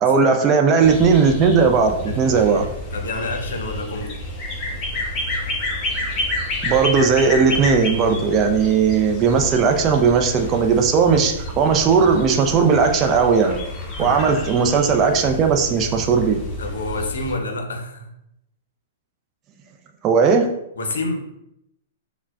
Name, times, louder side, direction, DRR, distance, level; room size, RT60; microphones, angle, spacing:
voice 1, 0.0-2.6 6.6-13.6 14.0-16.4 20.0-20.5, right 5 dB, 30° right, 4 dB, 0.4 m, -17 dB
sound 1, 0.8-17.4, left 1 dB, 30° left, 0.9 m, -29 dB
voice 2, 2.1-4.2 14.0-14.4 16.6-18.1 20.8-21.3, left 2 dB, 70° left, 4 dB, 0.6 m, -29 dB
5.4 x 2.1 x 2.3 m, 0.82 s
figure-of-eight pair, 110°, 0 cm